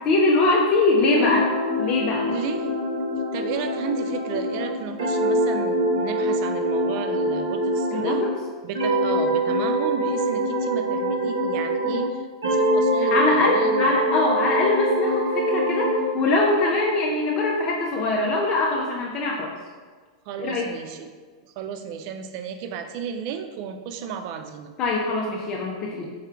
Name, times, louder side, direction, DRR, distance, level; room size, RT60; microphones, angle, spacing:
voice 1, 0.1-1.5 1.8-2.3 7.9-8.3 13.0-19.5 20.4-20.7 24.8-26.1, left 2 dB, 35° left, -2 dB, 0.5 m, -22 dB
sound 1, 1.1-8.4 8.7-12.1 12.4-16.1, equal, 60° right, 0.9 m, -24 dB
voice 2, 2.3-2.8 3.3-8.2 8.6-14.0 20.3-21.1 21.4-24.7, right 7 dB, 45° right, 8 dB, 0.4 m, -33 dB
4.8 x 4.3 x 2.3 m, 1.5 s
figure-of-eight pair, 95°, 2 cm